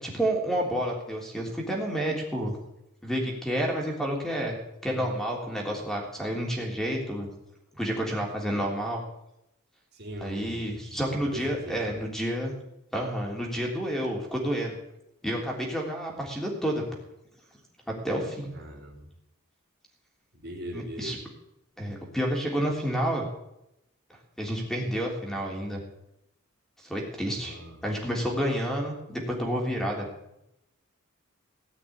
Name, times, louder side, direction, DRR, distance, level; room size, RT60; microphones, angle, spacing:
voice 1, 0.0-2.6 3.0-4.6 4.8-7.3 7.7-9.0 10.2-12.5 12.9-14.8 15.2-17.0 17.9-18.5 20.7-21.2 21.8-23.2 24.4-25.8 26.8-27.6 27.8-30.1, equal, ahead, 0 dB, 3.2 m, -30 dB
voice 2, 9.9-12.0 18.5-19.1 20.3-21.2 27.3-27.8, equal, 50° right, -2 dB, 3.8 m, -41 dB
17.5 x 6.1 x 9.8 m, 0.84 s
head